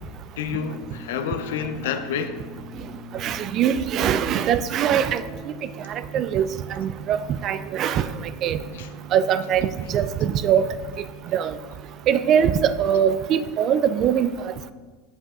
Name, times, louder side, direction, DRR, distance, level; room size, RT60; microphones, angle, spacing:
voice 1, 0.4-2.4 8.7-8.9 9.6-9.8, left 7 dB, 80° left, 9 dB, 0.5 m, -29 dB
sound 1, 0.5-13.6, right 3 dB, 20° right, 0.8 m, -42 dB
voice 2, 3.1-5.2 5.9-8.1 8.4-8.6 9.1-10.7 11.3-11.5 12.1-14.7, right 9 dB, 45° right, 13 dB, 0.3 m, -22 dB
7.5 x 5.8 x 2.4 m, 1.4 s
supercardioid pair, 110°, 0 cm